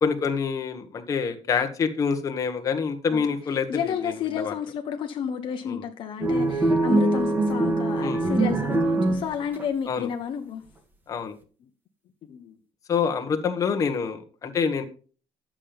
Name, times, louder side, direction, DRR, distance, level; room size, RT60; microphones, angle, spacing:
voice 1, 0.0-4.5 5.7-5.8 8.0-8.2 9.9-10.1 11.1-11.3 12.9-14.8, left 6 dB, 30° left, 5 dB, 1.4 m, -26 dB
voice 2, 3.7-10.6 12.3-12.6, left 7 dB, 50° left, 5 dB, 1.2 m, -31 dB
sound 1, 6.2-9.6, right 2 dB, 15° right, 1.6 m, -23 dB
11.0 x 7.5 x 5.2 m, 0.38 s
cardioid pair, 170°, 11 cm